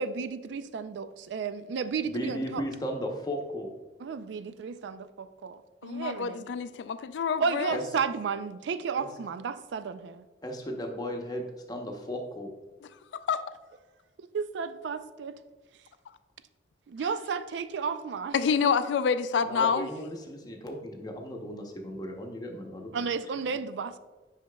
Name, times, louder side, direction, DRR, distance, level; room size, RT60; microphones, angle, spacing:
voice 1, 0.0-2.6 4.0-6.5 7.4-10.2 14.2-15.4 16.9-18.4 22.9-24.0, right 5 dB, 70° right, 12 dB, 0.3 m, -33 dB
voice 2, 2.0-3.7 7.7-7.8 9.0-9.1 10.4-12.5 19.4-23.1 23.5-23.6, equal, 20° left, 1 dB, 0.8 m, -36 dB
voice 3, 5.8-7.8 13.3-13.4 18.3-19.9, left 6 dB, 70° left, 12 dB, 0.3 m, -27 dB
8.0 x 5.7 x 2.2 m, 1.3 s
head